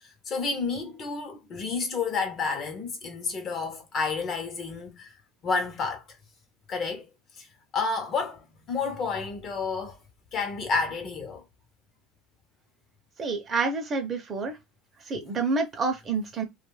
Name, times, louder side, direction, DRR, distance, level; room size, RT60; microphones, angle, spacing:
voice 1, 0.0-5.1 5.4-6.0 6.7-7.1 7.4-7.5 7.7-10.0 10.3-11.4, left 4 dB, 40° left, 0.7 m, -30 dB
voice 2, 13.2-14.5 15.1-16.4, right 4 dB, 30° right, 0.7 m, -28 dB
2.5 x 2.3 x 3.1 m
supercardioid pair, 130°, 0 cm